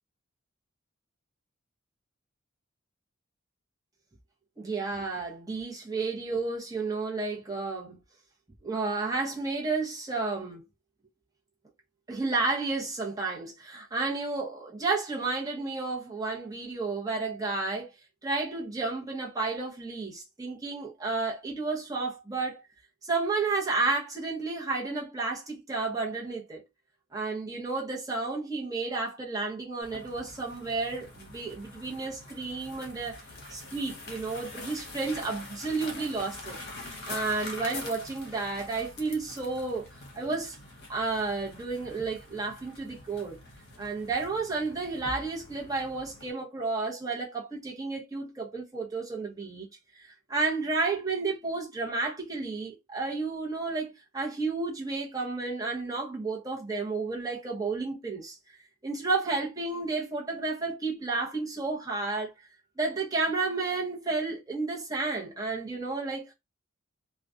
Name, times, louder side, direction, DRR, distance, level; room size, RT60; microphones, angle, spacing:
voice 1, 4.6-8.0 8.6-10.7 12.1-17.9 18.2-22.6 23.0-26.6 27.1-33.2 33.5-36.6 37.1-39.9 40.1-40.5 40.9-43.4 43.8-49.7 50.0-58.4 58.8-62.3 62.8-66.3, right 3 dB, 15° right, 0.7 m, -31 dB
sound 1, 29.8-46.3, left 2 dB, 50° left, 0.8 m, -45 dB
2.4 x 2.2 x 2.5 m
head